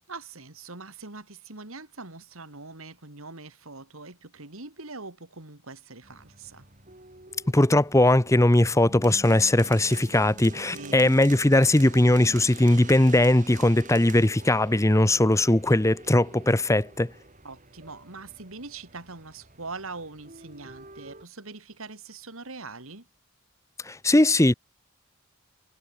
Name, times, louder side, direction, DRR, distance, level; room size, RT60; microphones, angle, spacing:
voice 1, 0.1-6.7 10.7-11.2 17.4-23.1, right 3 dB, 75° right, 3.0 m, -42 dB
sound 1, 6.0-21.2, right 3 dB, 35° right, 5.4 m, -46 dB
voice 2, 7.5-17.1 23.8-24.5, left 1 dB, 15° left, 0.8 m, -20 dB
head